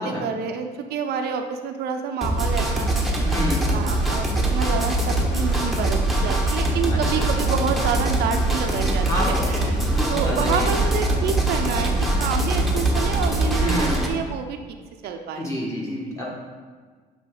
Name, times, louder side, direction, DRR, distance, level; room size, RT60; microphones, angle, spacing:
voice 1, 0.0-3.3 3.7-9.8 10.1-11.9 12.2-14.6 15.0-15.5, right 7 dB, 75° right, 6 dB, 0.5 m, -28 dB
sound 1, 2.2-14.1, right 1 dB, ahead, 0.9 m, -22 dB
voice 2, 3.2-3.6 6.9-7.2 9.0-9.4 9.8-10.8 13.5-14.0 15.4-16.3, equal, 20° left, -3 dB, 1.5 m, -28 dB
7.4 x 3.4 x 3.8 m, 1.5 s
cardioid pair, 110°, 17 cm